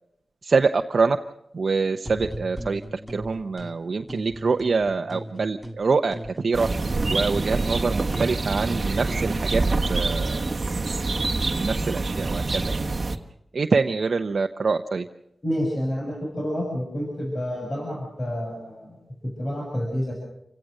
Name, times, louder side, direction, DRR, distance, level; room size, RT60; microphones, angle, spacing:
voice 1, 0.4-1.2 1.5-2.8 3.1-6.7 7.1-9.6 9.9-10.5 11.5-12.8 13.5-15.1, right 4 dB, 60° right, 6 dB, 0.8 m, -25 dB
sound 1, 2.0-3.7 4.1-5.8 6.1-9.8, right 1 dB, ahead, 1.8 m, -38 dB
sound 2, 6.5-13.2, right 3 dB, 40° right, 1.4 m, -26 dB
voice 2, 15.4-20.1, equal, 35° left, -2 dB, 6.4 m, -29 dB
28.0 x 17.0 x 6.5 m, 0.83 s
wide cardioid pair, 125°, 0 cm